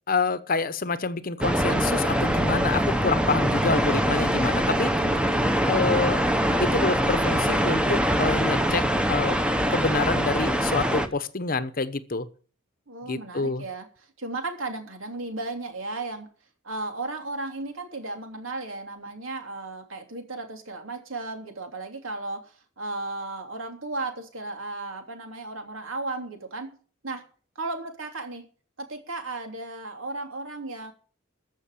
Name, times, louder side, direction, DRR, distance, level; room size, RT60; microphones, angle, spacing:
voice 1, 0.1-4.9 5.7-6.2 6.6-9.4 9.7-12.3 13.0-13.6, left 3 dB, 45° left, 0.9 m, -27 dB
sound 1, 1.4-11.1, equal, 5° right, 1.0 m, -23 dB
voice 2, 5.0-5.5 12.9-13.9 14.2-16.3 16.6-26.7 27.0-27.2 27.5-28.4 28.8-30.9, right 2 dB, 80° right, 3.1 m, -35 dB
14.5 x 6.5 x 8.5 m
head